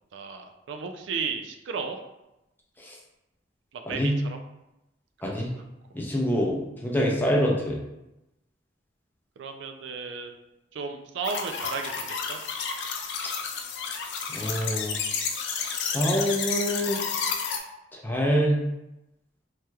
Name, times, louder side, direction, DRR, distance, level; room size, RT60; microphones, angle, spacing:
voice 1, 0.1-2.0 3.7-4.4 5.2-5.6 9.4-10.4 10.7-12.4, right 5 dB, 75° right, 5 dB, 0.3 m, -34 dB
voice 2, 5.9-7.8 14.3-15.0 15.9-17.0 18.0-18.6, equal, 10° left, -2 dB, 0.5 m, -25 dB
sound 1, 11.2-17.6, left 6 dB, 65° left, 0.4 m, -31 dB
3.2 x 2.8 x 2.3 m, 0.93 s
head